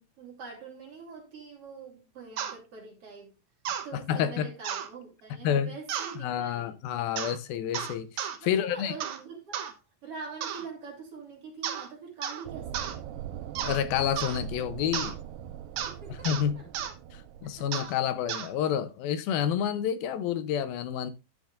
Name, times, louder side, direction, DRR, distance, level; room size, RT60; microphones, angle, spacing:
voice 1, 0.0-3.3 3.8-6.8 8.4-13.0 15.8-16.9 17.6-17.7, right 5 dB, 40° right, 3.7 m, -44 dB
sound 1, 2.4-2.6 3.7-3.9 4.6-4.9 5.9-6.2 7.2-7.4 7.7-8.4 9.0-9.2 9.5-9.7 10.4-10.7 11.6-11.9 12.2-12.4 12.7-13.0 13.6-13.8 14.2-14.4 14.9-15.1 15.8-15.9 16.2-16.4 16.7-16.9 17.7-17.9 18.3-18.5, right 9 dB, 65° right, 2.0 m, -33 dB
voice 2, 4.1-4.5 5.4-5.7 6.2-8.1 8.4-8.9 13.6-15.2 16.2-16.6 17.1-21.1, left 9 dB, 75° left, 2.5 m, -29 dB
sound 2, 12.4-18.1, right 10 dB, 90° right, 2.8 m, -41 dB
13.0 x 6.8 x 2.5 m
omnidirectional pair, 4.6 m